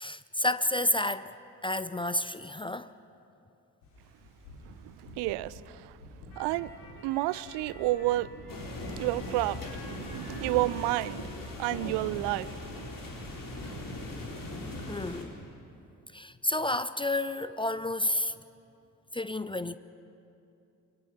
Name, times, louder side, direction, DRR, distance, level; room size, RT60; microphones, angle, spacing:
voice 1, 0.0-1.3 1.6-2.9 14.9-15.3 16.1-18.3 19.1-19.8, left 1 dB, 10° left, 0.6 m, -30 dB
sound 1, 3.8-10.8, left 2 dB, 80° left, 3.2 m, -50 dB
voice 2, 5.0-5.9 6.4-6.7 7.0-8.4 9.0-11.3 11.6-12.5 12.8-12.9 13.6-13.8, right 17 dB, 60° right, 0.7 m, -30 dB
sound 2, 8.5-15.2, left 1 dB, 40° left, 4.3 m, -39 dB
28.0 x 21.0 x 5.8 m
figure-of-eight pair, 40°, 49 cm